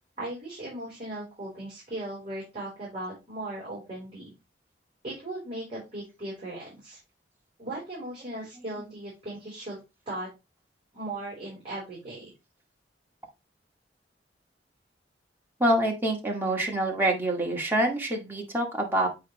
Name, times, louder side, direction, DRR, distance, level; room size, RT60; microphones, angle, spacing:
voice 1, 0.2-4.3 5.0-7.0 7.6-10.3 10.9-12.3, right 1 dB, 35° right, -7 dB, 4.2 m, -38 dB
voice 2, 15.6-19.1, right 1 dB, 10° right, -1 dB, 1.9 m, -26 dB
8.5 x 4.5 x 3.1 m, 0.24 s
head